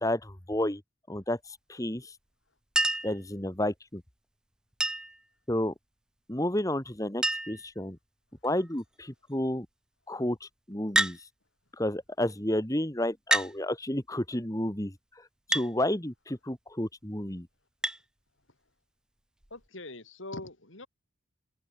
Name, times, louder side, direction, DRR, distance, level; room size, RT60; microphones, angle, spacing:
voice 1, 0.0-0.8 1.1-2.1 3.0-4.0 5.5-5.7 6.3-8.0 8.4-9.7 10.1-11.3 11.7-17.5, left 1 dB, 15° left, 1.7 m, -31 dB
Chink clink, 2.8-3.2 4.8-5.2 6.6-6.7 6.9-7.0 7.2-7.7 8.4-8.8 10.9-11.2 12.3-12.4 13.3-13.5 15.5-15.7 17.8-18.0 19.4-19.5, right 1 dB, 5° right, 0.3 m, -28 dB
voice 2, 19.5-20.9, left 2 dB, 70° left, 3.7 m, -42 dB
open air
head